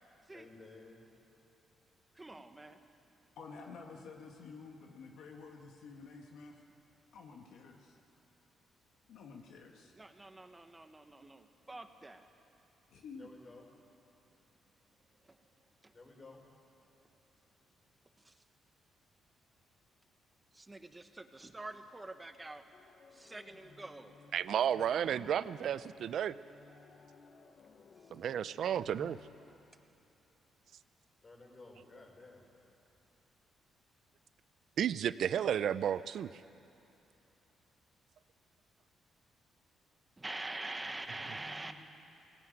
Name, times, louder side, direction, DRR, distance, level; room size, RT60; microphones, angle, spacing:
voice 1, 0.3-1.1 13.2-13.7 15.9-16.4 31.2-32.4 40.8-41.7, left 2 dB, 35° left, 0 dB, 5.2 m, -55 dB
voice 2, 2.2-2.8 9.9-12.3 15.2-15.4 15.8-15.9 18.2-18.3 20.5-22.6 23.1-24.2 28.0-28.1 40.2-41.7, right 2 dB, 15° right, 7 dB, 1.3 m, -46 dB
voice 3, 3.4-6.6 7.1-8.0 9.1-9.9 12.9-13.3 31.6-32.7 36.5-36.6, left 4 dB, 75° left, 1 dB, 1.8 m, -51 dB
sound 1, 22.7-29.5, left 5 dB, 55° left, 1.2 m, -58 dB
voice 4, 24.3-26.4 28.1-29.2 34.8-36.3, right 9 dB, 65° right, 16 dB, 0.5 m, -32 dB
18.5 x 17.0 x 9.2 m, 2.9 s
cardioid pair, 90°, 0 cm